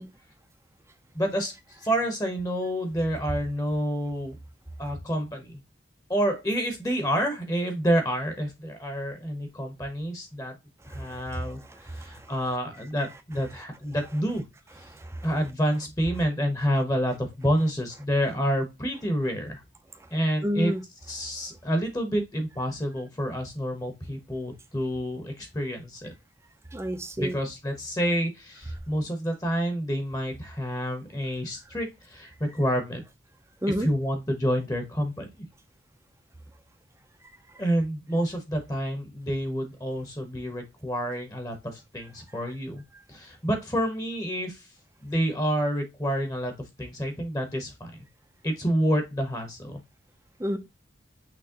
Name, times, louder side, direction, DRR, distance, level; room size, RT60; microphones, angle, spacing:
voice 1, 1.1-4.4 4.8-5.6 6.1-10.6 10.9-14.5 14.7-14.9 15.2-19.6 20.1-20.7 21.1-26.1 27.2-33.0 33.8-35.3 37.6-42.8 43.1-44.7 45.0-48.0 48.4-49.8, equal, 20° left, 1.0 m, -28 dB
voice 2, 10.9-11.2 11.9-12.3 14.9-15.3 20.4-20.8 26.7-27.4 33.6-33.9 50.4-50.6, equal, 15° right, 0.6 m, -30 dB
6.1 x 3.1 x 2.8 m
head